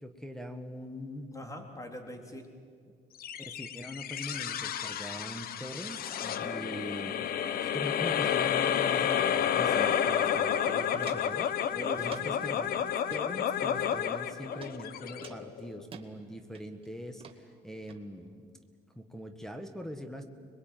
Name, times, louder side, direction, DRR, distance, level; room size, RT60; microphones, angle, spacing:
voice 1, 0.0-1.3 3.4-6.1 6.4-7.3 7.6-17.2 17.6-18.5 19.0-20.2, equal, 5° left, 7 dB, 1.8 m, -42 dB
voice 2, 1.3-2.5 6.2-6.5 11.7-12.1, equal, 20° left, 4 dB, 3.7 m, -42 dB
sound 1, 3.2-15.8, left 9 dB, 60° left, 1.2 m, -30 dB
Walk footsteps, 10.1-10.2 10.5-11.4 12.1-12.5 12.9-13.2 13.9-14.3 14.6-14.7 15.2-16.1 16.5-16.9 17.2-17.4 17.9-18.0, right 6 dB, 35° right, 2.2 m, -48 dB
26.0 x 22.0 x 9.2 m, 2.1 s
cardioid pair, 110°, 17 cm